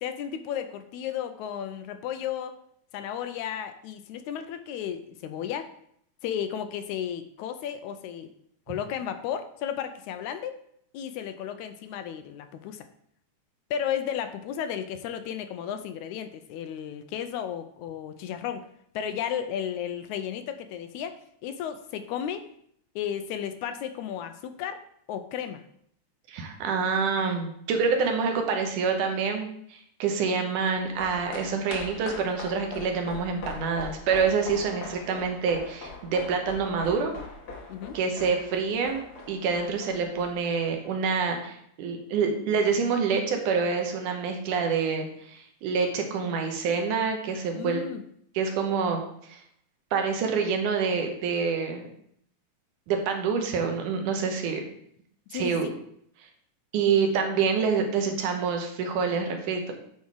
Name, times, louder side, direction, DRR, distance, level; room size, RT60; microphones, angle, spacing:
voice 1, 0.0-2.6 2.9-5.7 6.2-8.3 8.7-10.6 10.9-12.8 13.7-18.7 18.9-21.2 21.4-22.5 23.0-24.8 25.1-25.6 37.7-38.0 47.5-48.0 55.3-55.8, left 9 dB, 80° left, 9 dB, 1.9 m, -33 dB
voice 2, 26.3-37.1 37.9-39.0 39.3-47.8 48.4-49.0 49.3-49.4 49.9-51.8 52.9-54.6 55.3-55.7 56.7-59.7, right 5 dB, 85° right, 4 dB, 2.6 m, -27 dB
sound 1, 30.6-41.2 41.5-41.6, left 3 dB, 50° left, 1.1 m, -42 dB
9.4 x 4.2 x 4.8 m, 0.68 s
omnidirectional pair, 3.5 m